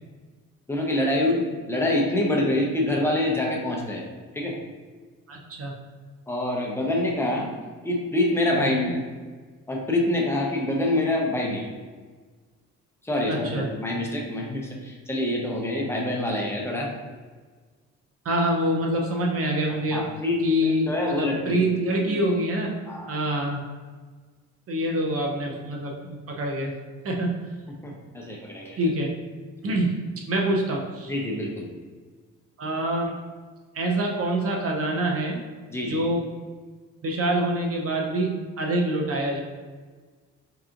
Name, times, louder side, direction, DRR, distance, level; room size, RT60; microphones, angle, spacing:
voice 1, 0.7-4.0 4.3-4.6 6.3-7.5 7.8-9.0 9.7-11.7 13.0-16.9 19.7-21.6 22.9-23.2 27.8-28.9 31.1-31.7 35.7-36.0, left 1 dB, 10° left, -1 dB, 0.8 m, -26 dB
voice 2, 5.3-5.7 8.6-8.9 13.3-13.7 18.2-20.1 20.4-22.8 23.1-23.6 24.7-26.8 27.0-27.5 28.8-29.2 29.6-31.1 32.6-33.2 33.7-35.4 35.9-36.3 37.0-39.4, right 1 dB, 50° right, 0 dB, 0.7 m, -26 dB
4.7 x 2.9 x 2.5 m, 1.4 s
cardioid pair, 90°, 30 cm